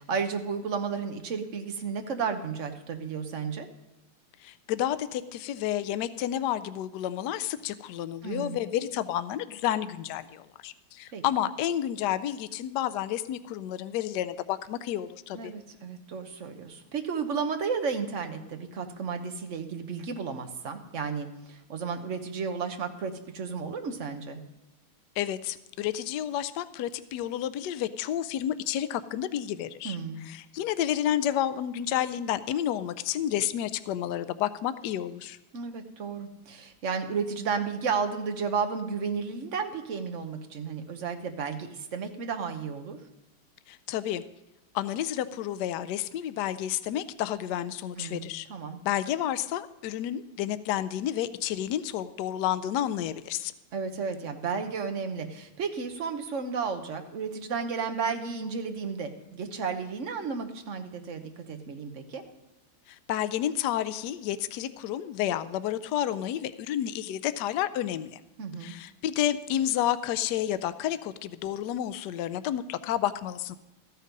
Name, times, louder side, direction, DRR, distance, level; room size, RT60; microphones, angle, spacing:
voice 1, 0.0-3.7 8.2-8.6 11.1-11.2 15.3-24.4 29.8-30.2 35.5-43.0 48.0-48.8 53.7-62.2 68.4-68.7, right 5 dB, 45° right, 6 dB, 1.0 m, -33 dB
voice 2, 4.4-15.5 25.2-30.0 30.2-35.4 43.7-44.2 44.7-48.5 48.8-53.5 62.9-68.2 68.6-73.6, left 11 dB, 90° left, 13 dB, 0.9 m, -30 dB
14.0 x 9.2 x 5.2 m, 0.94 s
omnidirectional pair, 2.4 m